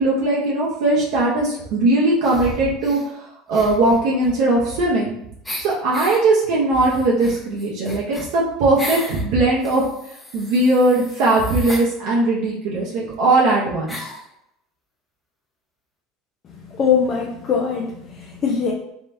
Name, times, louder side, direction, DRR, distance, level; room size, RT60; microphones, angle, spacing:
voice 1, 0.0-5.2 5.6-9.8 10.3-14.1, right 2 dB, 70° right, -5 dB, 0.9 m, -19 dB
sound 1, 2.2-3.1 3.5-5.1 5.4-6.2 6.7-9.2 9.6-11.9 12.8-12.9 13.1-13.2 13.9-14.3, left 1 dB, 10° left, 1.0 m, -35 dB
voice 2, 16.6-18.7, left 6 dB, 40° left, -3 dB, 0.7 m, -22 dB
3.6 x 3.2 x 2.7 m, 0.77 s
hypercardioid pair, 80°, 0 cm